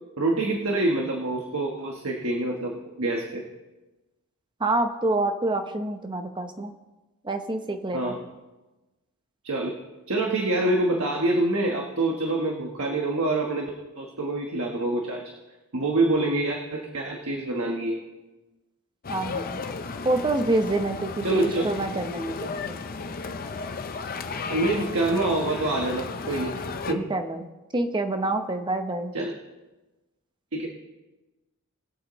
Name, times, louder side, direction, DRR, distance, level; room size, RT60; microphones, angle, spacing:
voice 1, 0.2-3.4 7.9-8.2 9.4-9.8 10.1-13.7 14.0-15.2 15.7-18.0 21.2-21.7 24.5-26.5 26.9-27.1 29.1-29.3 30.5-30.7, right 2 dB, 70° right, 0 dB, 1.3 m, -26 dB
voice 2, 4.6-6.7 7.2-8.2 19.1-19.6 20.0-22.8 27.1-27.5 27.7-29.1, right 2 dB, 20° right, 6 dB, 0.8 m, -27 dB
sound 1, 19.0-26.9, left 4 dB, 40° left, 0.6 m, -34 dB
21.5 x 8.0 x 3.1 m, 1.1 s
head